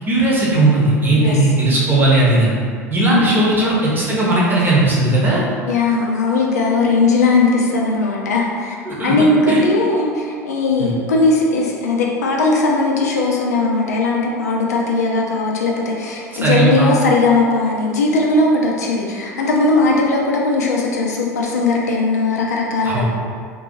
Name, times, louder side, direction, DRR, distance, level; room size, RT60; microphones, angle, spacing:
voice 1, 0.0-2.5 2.9-5.4 8.8-9.2 9.5-9.6 10.8-11.0 16.3-16.9 22.8-23.0, right 2 dB, 25° right, -6 dB, 0.8 m, -16 dB
voice 2, 3.1-3.4 5.7-8.8 9.0-23.0, left 3 dB, 75° left, -2 dB, 0.4 m, -18 dB
2.6 x 2.6 x 2.7 m, 2.1 s
figure-of-eight pair, 75°, 9 cm